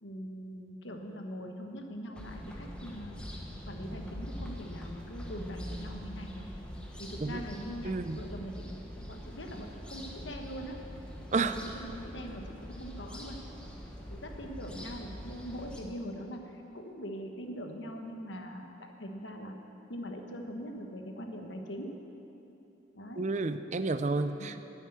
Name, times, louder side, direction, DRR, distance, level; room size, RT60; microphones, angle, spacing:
voice 1, 0.0-3.2 3.7-6.5 7.0-10.8 11.4-13.5 14.1-19.5 19.9-22.0 22.9-23.3 24.4-24.6, equal, 70° left, 3 dB, 1.4 m, -42 dB
sound 1, 2.1-15.8, equal, 5° left, 1.2 m, -43 dB
voice 2, 7.8-8.2 11.3-11.5 23.2-24.5, right 3 dB, 40° right, 10 dB, 0.5 m, -30 dB
10.5 x 8.3 x 9.8 m, 3.0 s
head